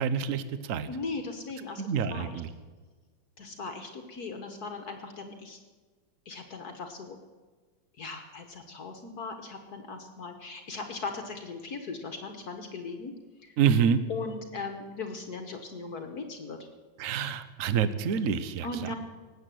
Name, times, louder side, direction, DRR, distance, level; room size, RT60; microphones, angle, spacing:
voice 1, 0.0-0.9 1.8-2.5 13.6-14.0 17.0-18.9, right 7 dB, 55° right, 14 dB, 1.0 m, -27 dB
voice 2, 0.9-1.8 2.1-2.4 3.4-5.6 6.2-7.2 8.0-13.1 13.4-13.6 14.1-16.6 18.6-18.9, left 3 dB, 55° left, 6 dB, 1.6 m, -38 dB
19.0 x 8.3 x 7.6 m, 1.4 s
omnidirectional pair, 2.1 m